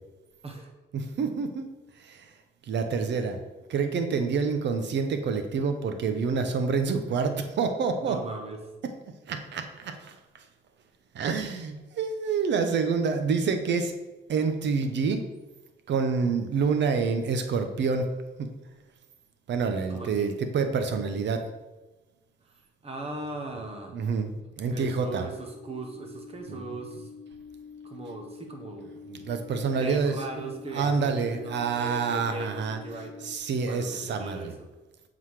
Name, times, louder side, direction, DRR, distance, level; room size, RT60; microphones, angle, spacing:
voice 1, 0.9-1.7 2.0-2.3 2.7-3.4 3.7-8.2 9.3-10.2 11.1-13.9 14.3-15.2 15.9-18.1 18.4-18.5 19.5-21.5 23.9-24.3 24.6-25.3 26.5-26.6 29.1-30.2 30.7-32.8 33.2-34.5, right 5 dB, 65° right, 7 dB, 0.9 m, -27 dB
voice 2, 8.0-8.6 19.9-20.3 22.5-22.6 22.8-24.0 24.7-27.1 27.8-28.9 29.8-34.7, right 2 dB, 30° right, 3 dB, 1.4 m, -39 dB
sound 1, 25.3-33.4, left 6 dB, 80° left, 0.7 m, -46 dB
7.4 x 3.9 x 4.9 m, 1.1 s
cardioid pair, 90°, 20 cm